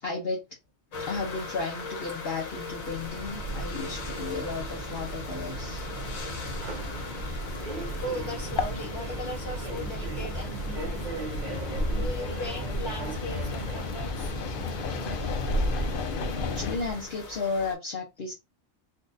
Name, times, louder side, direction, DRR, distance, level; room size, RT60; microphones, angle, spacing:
voice 1, 0.0-0.4 1.0-5.9 16.4-18.3, left 4 dB, 50° left, 0.9 m, -33 dB
sound 1, 0.9-17.7, left 3 dB, 85° left, 1.4 m, -41 dB
Subway metro underground, 2.7-17.1, right 2 dB, 50° right, 0.5 m, -35 dB
sound 2, 5.4-16.8, left 6 dB, 70° left, 0.5 m, -36 dB
voice 2, 7.7-11.4 11.9-14.3, left 1 dB, 15° left, 1.2 m, -38 dB
4.0 x 2.4 x 2.5 m
omnidirectional pair, 1.4 m